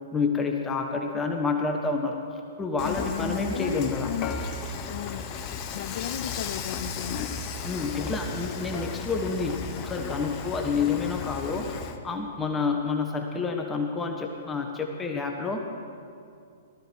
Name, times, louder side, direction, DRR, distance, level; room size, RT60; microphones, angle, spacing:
voice 1, 0.1-2.2 2.6-4.1 7.6-11.7 12.0-15.6, left 4 dB, 15° left, 3 dB, 1.2 m, -28 dB
voice 2, 2.8-4.3 4.9-5.3 5.7-7.2, left 11 dB, 55° left, 15 dB, 0.4 m, -34 dB
Dishes pots and pans / Frying (food), 2.8-12.0, left 5 dB, 35° left, 1.0 m, -35 dB
18.5 x 14.0 x 4.6 m, 2.4 s
figure-of-eight pair, 115°, 0 cm